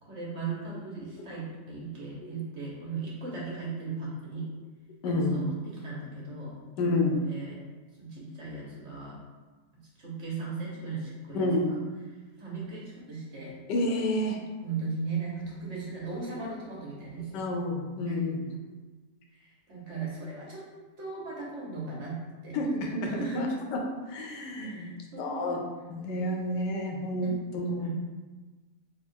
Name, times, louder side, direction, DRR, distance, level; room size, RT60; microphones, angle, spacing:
voice 1, 0.0-4.5 5.1-6.9 7.3-7.5 8.0-9.2 10.0-11.8 12.4-13.6 14.6-17.5 18.1-18.2 19.3-20.6 21.0-22.6 23.2-23.4 24.6-25.6 27.2-27.4 27.8-27.9, right 4 dB, 50° right, -5 dB, 1.1 m, -37 dB
voice 2, 5.0-5.4 6.8-7.2 11.3-11.8 13.7-14.4 16.2-16.3 17.3-18.4 22.5-23.8 24.1-24.9 25.2-25.6 25.9-27.9, left 1 dB, 90° left, 2 dB, 1.3 m, -29 dB
3.6 x 2.4 x 4.4 m, 1.3 s
omnidirectional pair, 1.8 m